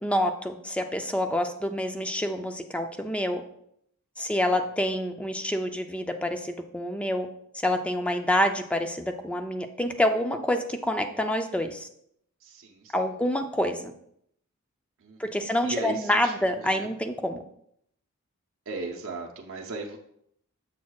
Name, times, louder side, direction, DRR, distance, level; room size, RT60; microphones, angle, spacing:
voice 1, 0.0-3.4 4.2-7.3 7.6-11.9 12.9-13.9 15.2-17.4, left 1 dB, 5° left, 6 dB, 0.4 m, -27 dB
voice 2, 12.4-13.0 15.0-16.9 18.7-20.0, right 3 dB, 65° right, 1 dB, 0.7 m, -37 dB
7.2 x 6.2 x 2.3 m, 0.71 s
head